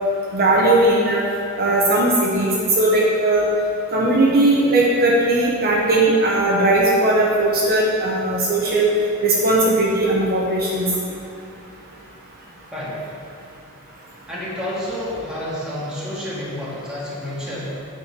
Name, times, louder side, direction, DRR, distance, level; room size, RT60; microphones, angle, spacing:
voice 1, 0.3-1.2 1.6-3.4 3.9-8.9 9.2-11.2, right 2 dB, 45° right, -4 dB, 1.1 m, -18 dB
voice 2, 12.7-13.2 14.3-17.8, left 1 dB, 5° right, -9 dB, 2.4 m, -29 dB
8.5 x 5.1 x 6.7 m, 2.4 s
head